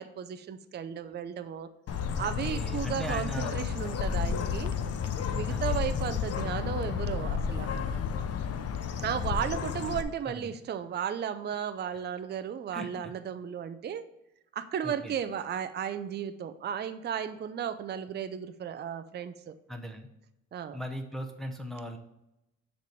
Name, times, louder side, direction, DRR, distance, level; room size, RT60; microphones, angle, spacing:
voice 1, 0.0-1.7 2.2-4.7 5.3-7.7 9.0-14.0 14.5-19.6 20.5-20.8, right 8 dB, 35° right, 11 dB, 0.5 m, -34 dB
Bird, 1.9-10.0, left 7 dB, 55° left, 0.6 m, -32 dB
voice 2, 2.1-3.5 5.5-5.9 9.4-9.9 10.3-10.6 12.7-13.1 14.8-15.2 19.7-20.1 20.7-22.0, equal, ahead, 3 dB, 0.8 m, -39 dB
6.6 x 3.3 x 5.1 m, 0.88 s
cardioid pair, 90°, 30 cm